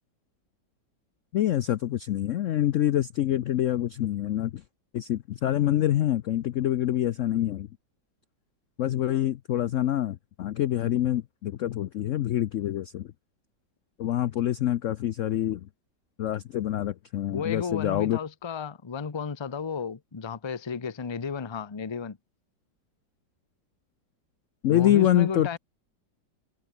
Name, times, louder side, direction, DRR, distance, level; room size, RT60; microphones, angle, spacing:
voice 1, 1.3-4.6 4.9-7.7 8.8-13.1 14.0-15.6 16.2-18.2 24.6-25.5, left 12 dB, 80° left, 0.7 m, -26 dB
voice 2, 17.3-22.2 24.7-25.6, left 6 dB, 30° left, 0.5 m, -33 dB
omnidirectional pair, 2.0 m